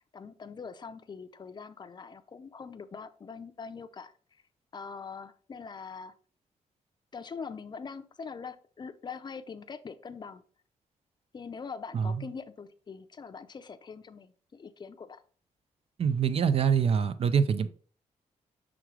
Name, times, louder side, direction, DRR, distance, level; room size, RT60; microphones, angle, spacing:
voice 1, 0.0-4.4 4.7-6.1 7.1-10.4 11.3-15.2, left 5 dB, 35° left, 0.6 m, -43 dB
voice 2, 16.0-17.7, right 7 dB, 50° right, 0.5 m, -25 dB
6.1 x 3.7 x 4.6 m
cardioid pair, 120°, 13 cm